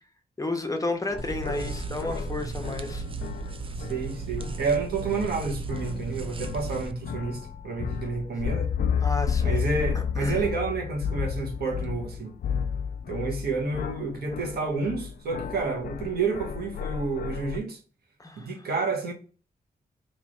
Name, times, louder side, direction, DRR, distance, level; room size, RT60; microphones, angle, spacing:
voice 1, 0.4-3.0 9.0-9.6 9.9-10.4 18.2-18.5, left 2 dB, 20° left, 0.9 m, -32 dB
sound 1, 1.1-4.7 5.0-17.6, left 7 dB, 60° left, 0.4 m, -32 dB
sound 2, 1.2-6.9, right 3 dB, 35° right, 0.5 m, -35 dB
voice 2, 3.8-8.7 9.4-12.3 13.1-17.8 18.4-19.1, right 4 dB, 75° right, 1.4 m, -30 dB
3.2 x 3.0 x 3.9 m
cardioid pair, 65°, 16 cm